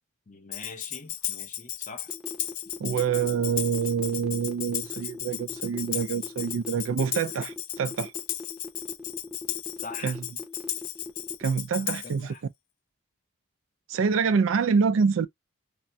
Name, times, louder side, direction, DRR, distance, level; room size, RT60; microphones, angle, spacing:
voice 1, 0.3-2.1 9.8-10.2 12.0-12.4, left 4 dB, 35° left, 0.7 m, -43 dB
Tambourine, 0.5-12.2, left 11 dB, 85° left, 0.5 m, -35 dB
sound 1, 2.1-11.4, left 3 dB, 5° right, 0.7 m, -41 dB
voice 2, 2.8-8.1 10.0-10.2 11.4-12.3 13.9-15.3, right 6 dB, 65° right, 0.4 m, -26 dB
3.5 x 2.1 x 2.7 m
head